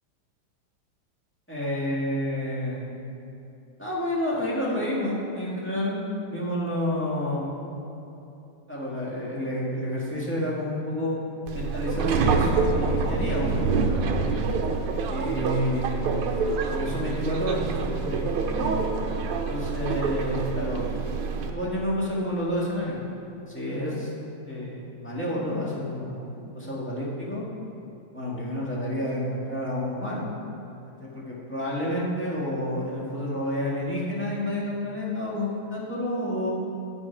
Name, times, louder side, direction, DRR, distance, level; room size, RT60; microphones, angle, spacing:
voice 1, 1.5-2.9 3.8-6.0 6.3-7.5 8.7-11.1 11.5-14.4 15.1-16.1 16.7-18.8 19.3-20.8 21.4-23.0 23.5-24.1 24.4-27.4 28.1-30.3 31.0-36.5, left 1 dB, 5° left, -7 dB, 1.4 m, -29 dB
Subway metro underground, 11.5-21.5, right 4 dB, 80° right, 1.6 m, -26 dB
8.3 x 6.8 x 5.7 m, 2.9 s
omnidirectional pair, 2.4 m